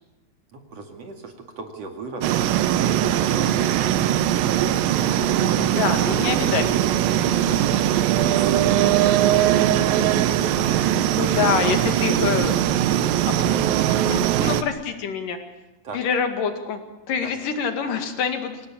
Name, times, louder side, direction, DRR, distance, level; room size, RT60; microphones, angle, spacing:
voice 1, 0.5-2.3 9.3-12.2 15.8-16.0 17.2-17.3, right 4 dB, 50° right, 4 dB, 3.0 m, -38 dB
sound 1, 2.2-14.6, right 11 dB, 85° right, 2.7 m, -20 dB
voice 2, 5.6-6.6 7.1-7.2 11.1-12.6 13.3-13.4 14.1-15.4 15.9-16.8 17.1-18.7, left 6 dB, 70° left, 6 dB, 3.6 m, -25 dB
25.0 x 18.5 x 8.7 m, 0.99 s
omnidirectional pair, 4.0 m